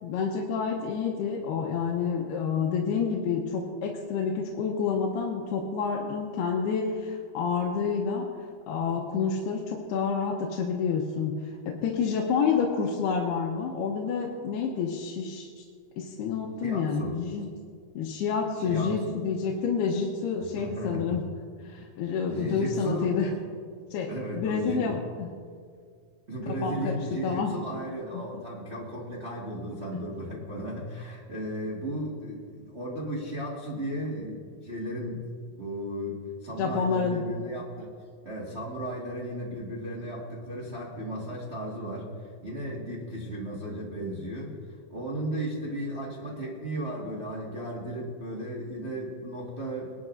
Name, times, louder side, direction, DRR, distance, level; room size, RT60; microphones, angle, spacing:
voice 1, 0.0-8.3 8.7-11.3 11.7-15.6 16.0-17.4 17.9-21.2 21.6-23.3 23.9-25.3 26.5-26.9 27.2-27.5 28.1-28.2 36.6-37.2, left 6 dB, 80° left, -2 dB, 2.9 m, -28 dB
voice 2, 16.6-17.2 18.6-19.0 20.5-21.2 21.8-23.5 24.0-24.9 26.3-35.3 35.6-37.9 38.2-49.9, equal, 85° right, -5 dB, 0.5 m, -35 dB
21.0 x 12.0 x 2.6 m, 2.1 s
omnidirectional pair, 4.7 m